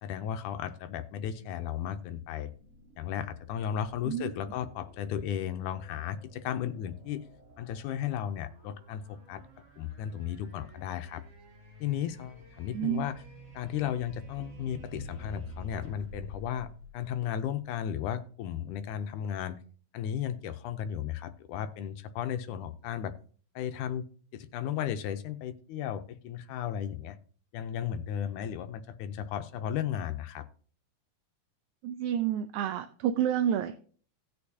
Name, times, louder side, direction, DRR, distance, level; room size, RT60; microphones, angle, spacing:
voice 1, 0.0-2.5 3.0-7.2 7.6-9.4 9.8-11.2 11.8-13.1 13.5-19.6 19.9-23.1 23.6-24.1 24.3-27.2 27.5-30.5, left 9 dB, 75° left, 10 dB, 2.0 m, -35 dB
sound 1, 2.5-17.7, left 1 dB, 45° right, 3.8 m, -50 dB
voice 2, 12.7-13.1 31.8-33.8, right 10 dB, 80° right, 8 dB, 1.8 m, -29 dB
17.5 x 6.6 x 2.8 m, 0.43 s
omnidirectional pair, 3.8 m